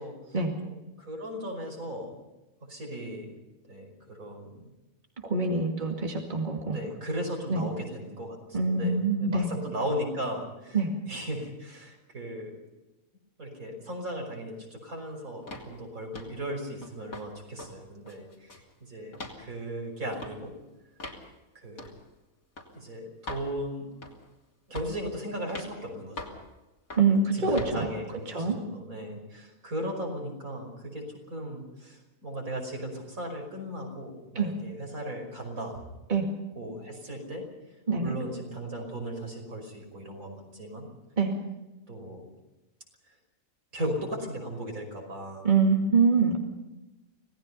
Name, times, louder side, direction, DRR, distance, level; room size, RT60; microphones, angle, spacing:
voice 1, 0.0-0.4 0.6-2.2 2.7-3.4 3.7-4.6 5.8-6.0 6.7-10.8 11.1-12.6 13.4-20.5 21.5-21.9 22.7-23.9 24.7-26.3 27.3-35.8 36.6-37.4 38.0-40.9 41.9-42.3 43.7-45.5, equal, 80° right, 2 dB, 5.8 m, -37 dB
voice 2, 5.2-6.8 7.5-7.7 8.5-9.5 10.7-10.9 27.0-27.9 28.3-28.6 34.4-34.5 36.1-36.3 37.9-38.1 41.2-41.4 45.4-46.4, right 4 dB, 35° right, 2 dB, 2.4 m, -25 dB
sound 1, 15.5-15.7 16.1-16.4 16.8-17.3 17.6-17.7 18.1-18.7 19.1-19.4 20.1-20.4 21.0-21.2 21.8-22.0 22.6-22.7 23.3-23.5 24.0-24.3 24.8-25.0 25.5-25.7 26.2-26.4 26.9-27.1 27.6-27.8, left 2 dB, 90° left, 3.4 m, -41 dB
25.5 x 18.5 x 5.6 m, 1.0 s
omnidirectional pair, 1.4 m